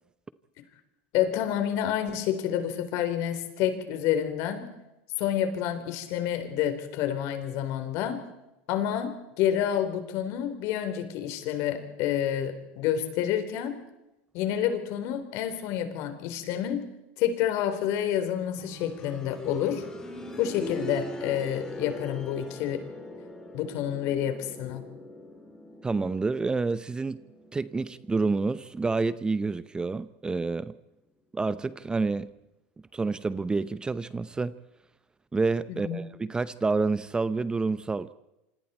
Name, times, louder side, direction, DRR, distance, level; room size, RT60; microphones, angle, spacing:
voice 1, 1.1-4.7 5.2-8.2 8.7-13.8 14.3-16.8 17.2-19.8 20.4-22.8 23.5-24.8 35.7-36.0, left 10 dB, 60° left, 3.8 m, -29 dB
sound 1, 18.6-29.4 30.7-30.8, equal, 10° left, 3.8 m, -41 dB
voice 2, 25.8-27.2 27.5-30.7 31.3-32.3 32.9-34.6 35.3-38.1, right 3 dB, 15° right, 0.7 m, -28 dB
27.5 x 25.5 x 4.4 m
supercardioid pair, 115°, 6 cm